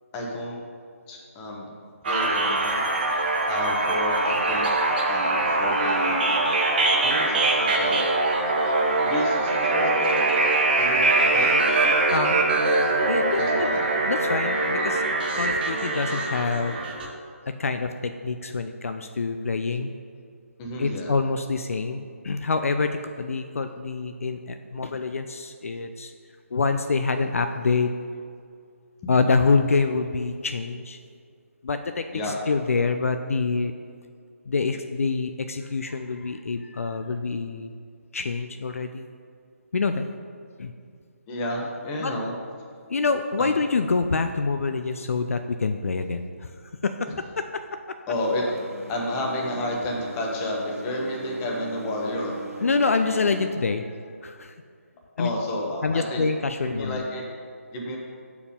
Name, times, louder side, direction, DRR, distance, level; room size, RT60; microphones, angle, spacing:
voice 1, 0.1-0.6 1.1-1.7 2.0-2.9 3.5-4.7 5.1-6.3 7.0-8.0 9.0-10.2 10.8-11.6 13.4-13.9 20.6-21.1 32.1-32.5 41.3-42.4 43.4-43.6 48.1-48.4 48.9-52.4 55.2-56.2 56.6-57.2 57.7-58.0, left 1 dB, 15° left, -1 dB, 1.0 m, -30 dB
sound 1, 2.0-17.1, right 2 dB, 40° right, 1.0 m, -23 dB
voice 2, 8.7-9.1 12.1-12.5 13.1-13.7 14.1-15.0 15.3-16.8 17.6-19.9 20.8-26.1 26.5-27.9 29.1-31.0 31.6-33.7 34.5-37.7 38.1-39.1 39.7-40.0 40.6-40.7 42.0-42.1 42.9-46.5 46.8-48.0 52.6-54.5 55.2-55.3 55.8-57.1, left 4 dB, 65° left, 8 dB, 0.4 m, -26 dB
sound 2, 48.1-53.5, right 2 dB, 70° right, 1.6 m, -39 dB
6.8 x 4.7 x 5.2 m, 2.3 s
figure-of-eight pair, 155°, 8 cm